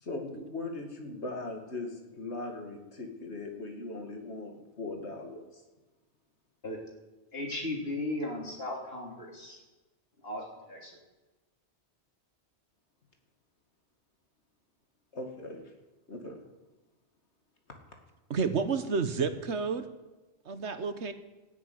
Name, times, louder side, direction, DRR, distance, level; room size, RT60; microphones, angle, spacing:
voice 1, 0.0-5.6 15.1-15.6 16.1-16.4, left 2 dB, 80° left, 3 dB, 2.5 m, -39 dB
voice 2, 7.3-9.6 10.2-11.0, left 1 dB, 60° left, 0 dB, 3.5 m, -36 dB
voice 3, 18.3-19.9 20.5-21.1, right 5 dB, 85° right, 10 dB, 1.5 m, -30 dB
13.5 x 10.0 x 9.4 m, 1.1 s
omnidirectional pair, 1.1 m